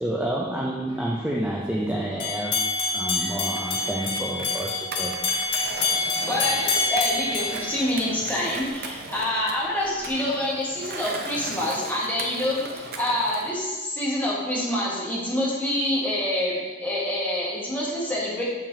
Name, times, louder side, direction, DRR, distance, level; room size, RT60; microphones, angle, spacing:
voice 1, 0.0-2.6 2.9-5.2, right 1 dB, 10° right, -2 dB, 0.4 m, -29 dB
sound 1, 2.2-8.4, left 3 dB, 80° left, 1.4 m, -27 dB
Skateboard, 3.5-13.5, right 3 dB, 55° right, 0.6 m, -38 dB
voice 2, 6.3-18.4, left 1 dB, 10° left, -7 dB, 1.5 m, -26 dB
6.7 x 5.8 x 2.7 m, 1.3 s
head